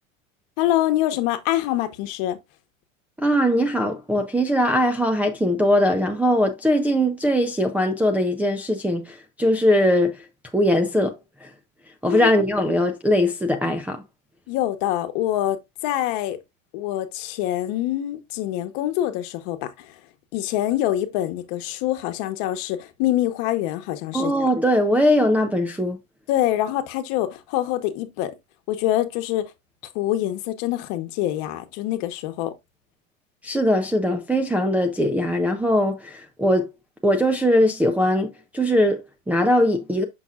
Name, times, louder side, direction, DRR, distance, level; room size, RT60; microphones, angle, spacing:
voice 1, 0.6-2.4 12.1-12.3 14.5-16.4 16.7-20.0 20.3-24.3 26.3-28.3 28.7-29.5 29.9-32.5, left 13 dB, 55° left, 1.2 m, -25 dB
voice 2, 3.2-10.3 10.5-11.5 12.0-14.0 24.1-26.0 33.4-36.7 37.0-40.0, equal, 5° right, 0.5 m, -21 dB
6.9 x 5.8 x 2.4 m
supercardioid pair, 135°, 40 cm